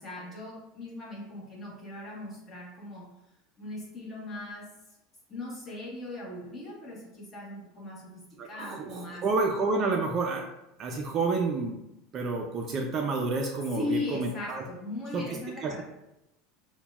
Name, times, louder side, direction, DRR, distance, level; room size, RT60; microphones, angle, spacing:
voice 1, 0.0-3.1 3.6-4.7 5.3-9.3 13.7-15.8, left 2 dB, 20° left, -4 dB, 1.1 m, -38 dB
voice 2, 8.4-10.4 10.8-11.8 12.1-14.6 15.1-15.2 15.6-15.8, right 3 dB, 30° right, 2 dB, 0.3 m, -29 dB
5.7 x 2.1 x 2.3 m, 0.90 s
supercardioid pair, 155°, 0 cm